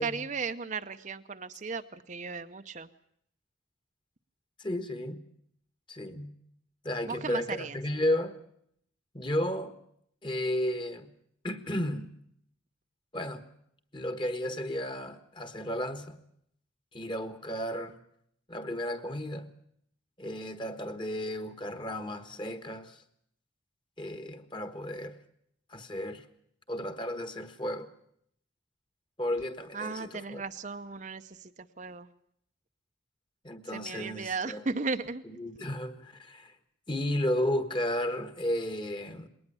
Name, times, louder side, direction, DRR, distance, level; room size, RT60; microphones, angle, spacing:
voice 1, 0.0-2.9 7.1-7.8 29.7-32.1 33.7-35.2, right 4 dB, 40° right, 9 dB, 0.7 m, -36 dB
voice 2, 4.6-5.2 5.9-6.3 6.8-8.4 9.1-9.7 10.2-11.1 11.4-12.1 13.1-13.4 13.9-16.2 16.9-18.0 18.5-19.5 20.2-23.0 24.0-25.2 25.7-26.2 26.7-27.9 29.2-30.4 33.4-34.6 35.4-36.5 36.9-39.3, left 1 dB, 25° left, 10 dB, 1.5 m, -33 dB
21.0 x 19.0 x 6.9 m, 0.69 s
head